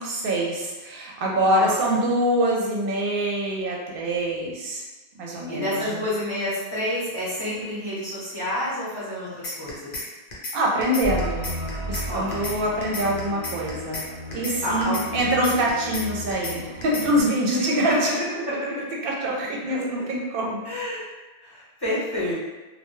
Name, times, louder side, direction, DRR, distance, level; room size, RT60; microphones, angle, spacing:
voice 1, 0.0-4.8 5.1-6.0 10.5-11.5 11.9-14.1 14.3-18.1 19.0-20.7, right 1 dB, 65° right, -2 dB, 0.7 m, -25 dB
voice 2, 1.4-1.7 5.3-10.0 12.1-12.6 14.6-15.0 17.6-17.7 20.6-21.0 21.4-22.3, left 1 dB, 25° left, -9 dB, 0.6 m, -29 dB
sound 1, 9.4-10.0 10.3-10.5 10.8-12.0 12.3-12.5 12.8-14.0 14.3-14.5 14.8-16.0 16.3-16.5 16.8-17.2, left 2 dB, 60° left, 0.8 m, -32 dB
epic music, 11.0-17.3, equal, 35° right, 0.8 m, -34 dB
2.2 x 2.0 x 3.0 m, 1.2 s
omnidirectional pair, 1.1 m